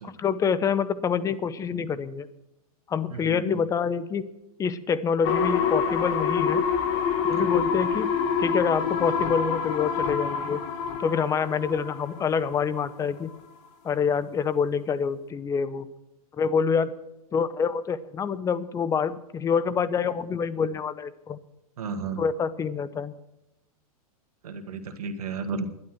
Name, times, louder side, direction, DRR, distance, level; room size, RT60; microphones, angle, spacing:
voice 1, 0.0-2.3 2.9-4.2 4.6-6.6 7.2-8.1 8.4-10.6 11.0-13.3 13.8-15.9 16.4-16.9 17.3-21.4 22.2-23.1, left 6 dB, 15° left, 15 dB, 0.8 m, -26 dB
voice 2, 3.2-3.6 7.3-7.5 21.8-22.2 24.4-25.6, right 4 dB, 75° right, 7 dB, 1.8 m, -33 dB
sound 1, 5.2-12.9 13.3-13.4, left 6 dB, 45° left, 1.6 m, -27 dB
12.0 x 11.5 x 6.1 m, 0.91 s
hypercardioid pair, 125°, 19 cm